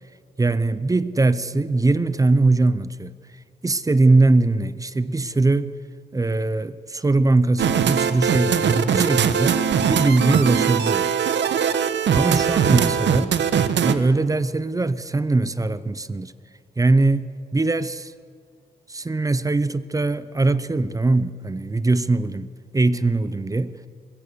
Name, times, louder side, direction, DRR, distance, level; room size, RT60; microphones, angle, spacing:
voice 1, 0.4-3.1 3.6-5.7 6.1-9.6 9.9-11.1 12.1-13.3 13.8-16.3 16.8-17.3 17.5-18.1 18.9-23.7, right 2 dB, 20° right, 0.6 m, -21 dB
sound 1, 7.6-13.9, right 7 dB, 85° right, 1.1 m, -21 dB
23.5 x 21.0 x 7.0 m
wide cardioid pair, 125°, 18 cm